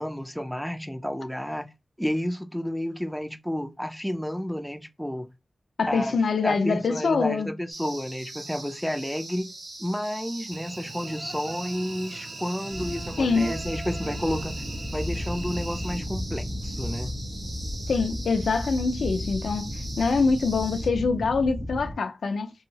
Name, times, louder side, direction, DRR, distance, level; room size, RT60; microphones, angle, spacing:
voice 1, 0.0-1.7 2.0-5.3 5.9-9.5 9.8-14.6 14.9-17.2, equal, ahead, 0.3 m, -31 dB
voice 2, 5.8-7.5 13.2-13.5 17.9-19.7 20.0-22.5, left 4 dB, 90° left, 0.3 m, -24 dB
sound 1, 7.7-20.9, right 2 dB, 85° right, 0.9 m, -42 dB
Cricket / Buzz, 10.5-16.0, right 3 dB, 70° right, 0.4 m, -41 dB
sound 2, 12.7-21.9, left 1 dB, 25° right, 1.2 m, -34 dB
2.7 x 2.6 x 2.8 m
cardioid pair, 60°, 0 cm